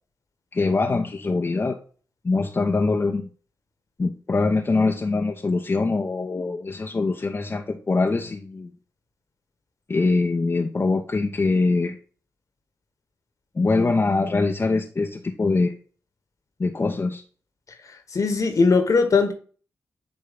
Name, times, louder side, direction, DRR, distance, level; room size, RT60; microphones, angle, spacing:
voice 1, 0.5-1.8 2.2-3.3 4.0-8.7 9.9-12.0 13.5-15.8 16.6-17.2, left 3 dB, 35° left, 0.9 m, -23 dB
voice 2, 17.9-19.3, left 4 dB, 55° left, 1.6 m, -20 dB
8.7 x 3.2 x 3.8 m
supercardioid pair, 45°, 7 cm